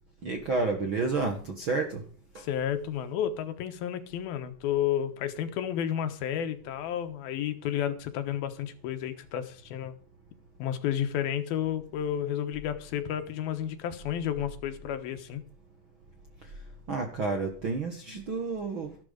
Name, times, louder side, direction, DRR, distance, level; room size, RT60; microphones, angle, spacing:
voice 1, 0.2-2.0 2.3-2.5 16.4-19.0, right 3 dB, 55° right, 1.5 m, -31 dB
voice 2, 2.4-9.9 10.6-15.4, left 10 dB, 75° left, 3.0 m, -31 dB
13.0 x 12.0 x 5.2 m
omnidirectional pair, 4.4 m